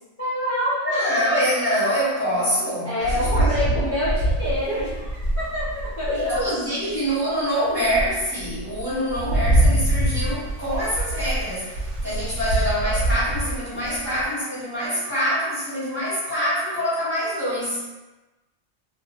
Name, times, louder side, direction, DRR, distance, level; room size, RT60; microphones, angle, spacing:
voice 1, 0.2-1.2 2.8-6.5 10.2-10.3, left 1 dB, 20° left, -11 dB, 0.4 m, -27 dB
voice 2, 0.8-3.8 6.0-17.8, equal, 20° right, -11 dB, 0.8 m, -25 dB
Rain, 3.0-6.5 7.1-7.2 7.7-14.2, right 1 dB, 75° right, 0.9 m, -25 dB
2.2 x 2.2 x 2.8 m, 1.1 s
omnidirectional pair, 1.2 m